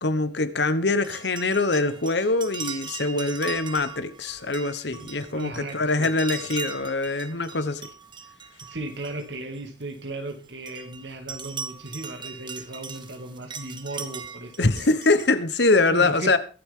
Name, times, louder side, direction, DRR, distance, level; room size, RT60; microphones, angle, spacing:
voice 1, 0.0-7.8 14.6-16.4, left 3 dB, 65° left, 1.2 m, -23 dB
sound 1, 1.0-9.8 10.3-15.3, right 6 dB, 25° right, 1.5 m, -40 dB
voice 2, 5.0-6.2 8.7-15.0 15.9-16.3, right 2 dB, 70° right, 2.5 m, -36 dB
22.5 x 8.0 x 3.7 m
head